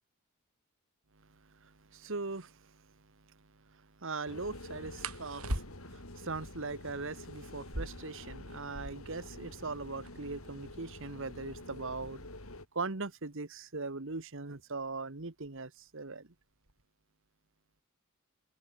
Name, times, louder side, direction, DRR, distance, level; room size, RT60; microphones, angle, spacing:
voice 1, 1.5-2.8 3.7-5.6 5.9-12.2 12.7-16.3, right 3 dB, 60° right, 1.5 m, -40 dB
sound 1, 2.3-2.5 5.0-6.1 7.5-9.2 9.5-9.6 9.8-10.4 11.0-13.6 14.6-14.9 15.3-15.8 16.1-16.8, right 1 dB, 85° right, 4.5 m, -42 dB
sound 2, 4.3-12.7, left 1 dB, 75° left, 5.1 m, -48 dB
head